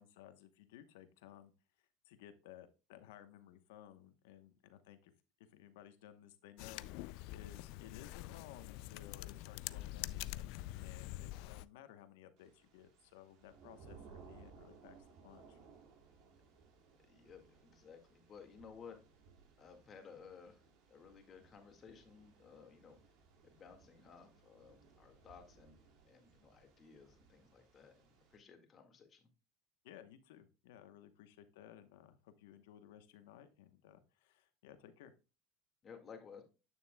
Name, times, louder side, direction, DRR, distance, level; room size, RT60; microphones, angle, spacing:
voice 1, 0.0-1.5 2.0-5.1 5.5-10.5 10.8-15.0 15.2-15.6 29.8-35.1, left 11 dB, 80° left, 10 dB, 1.0 m, -58 dB
sound 1, 6.6-11.6, left 16 dB, 65° left, 0.3 m, -45 dB
Thunder / Rain, 12.4-28.4, right 5 dB, 60° right, 2.3 m, -62 dB
voice 2, 17.1-19.0 19.6-20.6 20.9-23.0 23.4-25.8 26.0-29.3 35.8-36.4, left 6 dB, 30° left, 4 dB, 1.9 m, -57 dB
8.9 x 7.0 x 2.3 m, 0.32 s
supercardioid pair, 120°, 0 cm